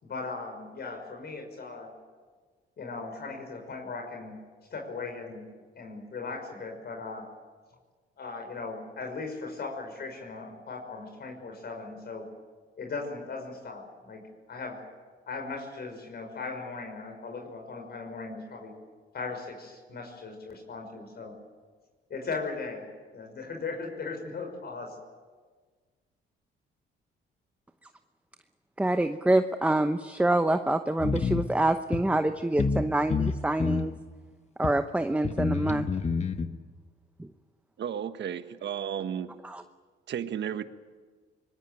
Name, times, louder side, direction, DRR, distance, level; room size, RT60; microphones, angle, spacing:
voice 1, 0.0-1.9 2.8-4.4 4.7-5.5 5.8-7.3 8.2-12.3 12.8-14.2 14.5-14.8 15.3-18.7 19.1-21.3 22.1-22.9 23.1-25.0, left 4 dB, 55° left, 3 dB, 5.7 m, -38 dB
voice 2, 28.8-33.9 34.6-35.9 37.2-37.3 39.4-39.6, right 1 dB, 5° right, 9 dB, 0.9 m, -26 dB
sound 1, 31.0-31.5 31.9-32.0 32.6-32.8 33.1-33.9 34.6-34.7 35.2-36.5, left 5 dB, 35° left, 1.3 m, -28 dB
voice 3, 37.8-39.3 40.1-40.6, right 9 dB, 65° right, 10 dB, 1.4 m, -33 dB
24.0 x 20.5 x 9.1 m, 1.5 s
cardioid pair, 90°, 20 cm